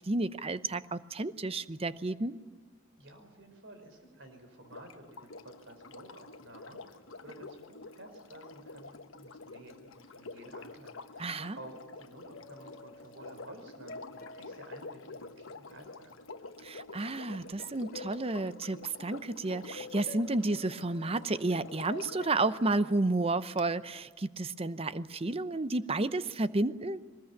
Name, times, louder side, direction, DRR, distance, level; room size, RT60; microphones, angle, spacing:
voice 1, 0.0-2.4 11.2-11.6 16.6-27.0, right 2 dB, 30° right, 14 dB, 0.7 m, -31 dB
voice 2, 3.0-16.1, right 1 dB, 65° right, 6 dB, 4.9 m, -52 dB
Sink (filling or washing), 4.6-22.4 23.6-23.7, left 3 dB, 80° left, 1.1 m, -48 dB
sound 1, 12.3-16.2 17.6-19.5 19.7-24.3, left 3 dB, 45° left, 1.1 m, -51 dB
23.0 x 20.5 x 9.6 m, 1.4 s
head